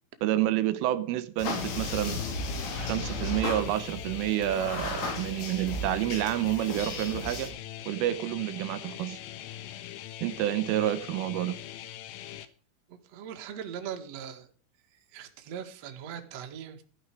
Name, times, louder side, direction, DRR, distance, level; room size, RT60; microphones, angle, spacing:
voice 1, 0.2-2.2 2.8-7.5 7.9-9.2 10.2-11.6, right 13 dB, 80° right, 13 dB, 3.4 m, -29 dB
sound 1, 1.4-7.5, left 2 dB, 60° left, 5.6 m, -35 dB
sound 2, 1.5-12.5, left 12 dB, 80° left, 3.9 m, -42 dB
voice 2, 12.9-14.5 14.9-16.8, right 8 dB, 55° right, 4 dB, 1.9 m, -40 dB
14.5 x 10.5 x 4.8 m, 0.40 s
omnidirectional pair, 5.9 m